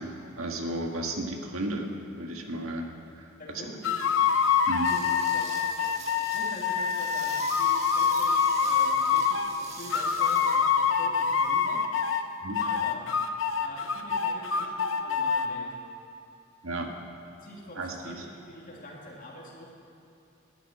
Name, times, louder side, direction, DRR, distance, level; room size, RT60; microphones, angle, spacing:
voice 1, 0.0-2.9 3.2-3.3 3.5-3.6 4.7-4.9 12.4-12.6 16.6-16.9 17.8-18.2, right 1 dB, 80° right, 2 dB, 1.6 m, -34 dB
voice 2, 3.4-4.2 4.7-11.9 12.1-12.3 12.6-13.0 13.6-15.8 17.3-19.6, equal, 40° left, -3 dB, 2.8 m, -45 dB
sound 1, 3.8-9.5 9.9-12.3 12.5-15.5, left 6 dB, 65° left, 0.9 m, -25 dB
sound 2, 4.8-10.6, right 4 dB, 30° right, 1.6 m, -44 dB
12.0 x 9.8 x 9.5 m, 2.9 s
head